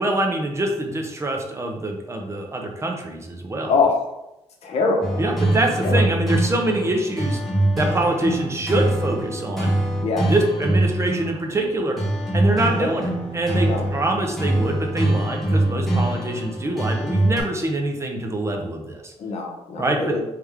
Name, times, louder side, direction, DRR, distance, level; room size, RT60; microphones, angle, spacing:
voice 1, 0.0-3.7 5.2-7.4 7.8-9.7 10.2-12.0 12.3-19.1 19.8-20.1, right 2 dB, 25° right, 2 dB, 0.5 m, -25 dB
voice 2, 3.7-4.0 4.6-5.2 5.8-6.1 10.0-10.3 12.7-12.9 13.6-13.9 19.2-20.2, left 4 dB, 65° left, 1 dB, 0.8 m, -23 dB
sound 1, 5.0-17.4, right 1 dB, ahead, 1.0 m, -23 dB
3.4 x 3.2 x 3.4 m, 0.91 s
wide cardioid pair, 145°, 12 cm